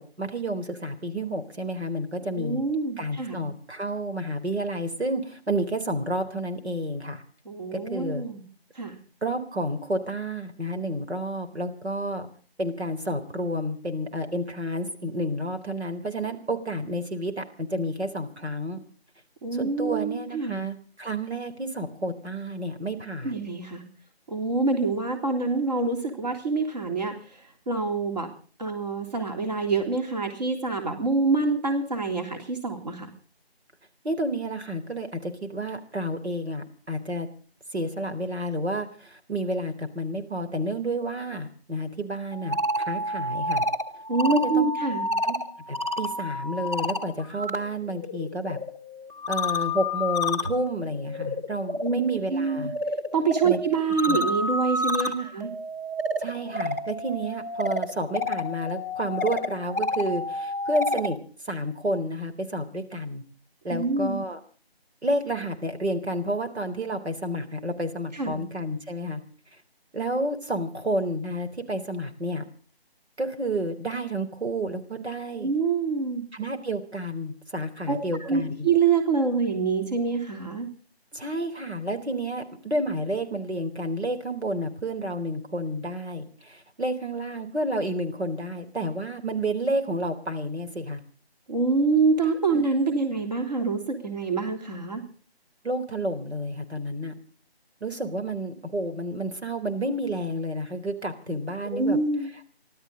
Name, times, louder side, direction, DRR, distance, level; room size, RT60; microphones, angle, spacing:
voice 1, 0.0-2.6 3.0-7.2 7.7-8.2 9.2-12.3 12.6-18.8 19.5-23.4 34.0-37.3 37.7-43.6 44.3-44.7 45.2-45.4 45.7-48.6 49.3-52.7 53.4-53.6 54.1-54.2 55.0-55.3 56.2-61.2 61.5-63.2 63.6-64.4 65.0-69.2 69.9-72.5 73.2-75.5 76.3-78.7 81.1-91.0 92.5-93.0 95.6-97.1 97.8-102.0, right 1 dB, 85° right, 5 dB, 3.8 m, -30 dB
voice 2, 2.4-3.4 7.5-8.4 8.8-8.9 19.4-20.6 23.2-23.8 24.3-27.2 27.7-28.3 28.6-33.1 44.1-45.1 51.8-52.0 52.3-52.7 53.1-55.5 63.7-64.2 68.1-68.4 75.4-76.3 77.9-80.7 91.5-95.0 101.7-102.3, right 4 dB, 40° right, 3 dB, 3.5 m, -26 dB
sound 1, 42.3-47.6 47.9-61.2, left 1 dB, 15° right, 1.0 m, -30 dB
29.0 x 13.0 x 3.9 m, 0.40 s
figure-of-eight pair, 165°, 32 cm